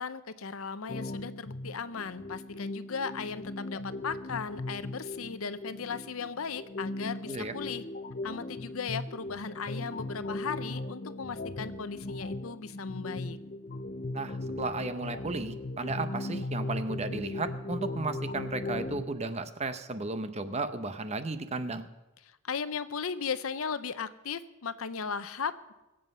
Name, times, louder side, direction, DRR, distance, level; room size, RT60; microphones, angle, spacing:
voice 1, 0.0-7.8 8.2-13.4 22.4-25.7, left 5 dB, 75° left, 13 dB, 0.7 m, -37 dB
sound 1, 0.9-19.0, left 2 dB, 40° left, 0.5 m, -38 dB
voice 2, 14.1-21.9, right 3 dB, 30° right, 10 dB, 0.7 m, -34 dB
22.5 x 7.8 x 5.5 m, 1.0 s
head